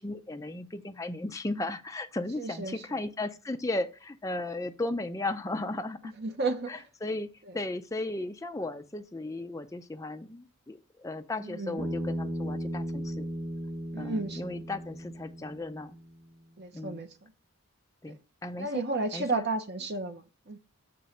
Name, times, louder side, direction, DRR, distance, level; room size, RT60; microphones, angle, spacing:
voice 1, 0.0-6.1 6.7-7.3 7.5-13.3 14.0-16.0 16.7-17.0 18.0-18.8 19.1-19.4, left 2 dB, 15° left, 0.5 m, -35 dB
voice 2, 2.4-2.8 6.2-6.7 11.4-11.8 13.9-14.5 16.6-17.1 18.6-20.6, right 3 dB, 50° right, 0.7 m, -32 dB
Bass guitar, 11.8-16.1, equal, 25° right, 1.3 m, -36 dB
7.6 x 3.0 x 5.6 m
head